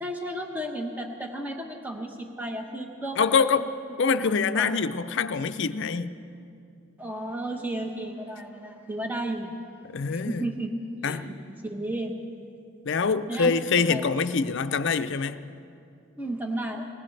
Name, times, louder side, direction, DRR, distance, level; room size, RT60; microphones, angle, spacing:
voice 1, 0.0-3.6 4.2-4.6 7.0-9.5 10.1-10.7 11.0-11.3 11.6-12.2 13.3-13.5 13.9-14.0 16.2-16.8, right 1 dB, 10° right, 2 dB, 1.0 m, -33 dB
voice 2, 3.2-3.7 4.0-6.2 9.9-10.4 11.0-11.3 12.9-15.4, left 5 dB, 55° left, 11 dB, 0.5 m, -25 dB
20.0 x 20.0 x 3.3 m, 2.6 s
head